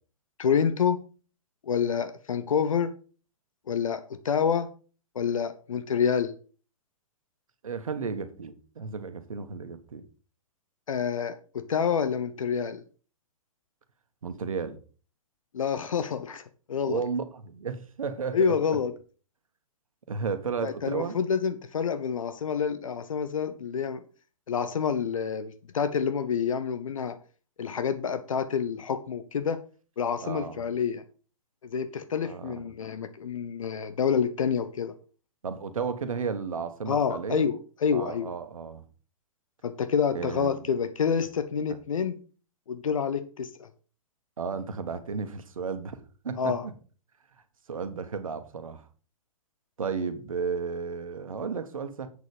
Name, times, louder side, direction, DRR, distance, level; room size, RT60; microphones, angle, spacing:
voice 1, 0.4-1.0 1.7-2.9 3.7-4.7 5.1-6.3 10.9-12.8 15.5-16.4 16.7-17.0 18.3-18.9 20.6-24.0 24.5-27.2 27.6-29.6 30.0-31.0 31.6-34.9 36.9-37.5 37.8-38.3 39.6-42.1 42.7-43.7 46.4-46.7, left 7 dB, 65° left, 0.9 m, -28 dB
voice 2, 7.6-10.0 14.2-14.8 16.8-18.5 20.1-21.2 30.2-30.6 32.2-32.6 35.4-37.5 37.9-38.8 40.1-40.6 44.4-46.0 46.2-46.7 47.7-48.8 49.8-52.1, right 5 dB, 70° right, 1.4 m, -33 dB
8.1 x 6.7 x 5.0 m
figure-of-eight pair, 115°, 18 cm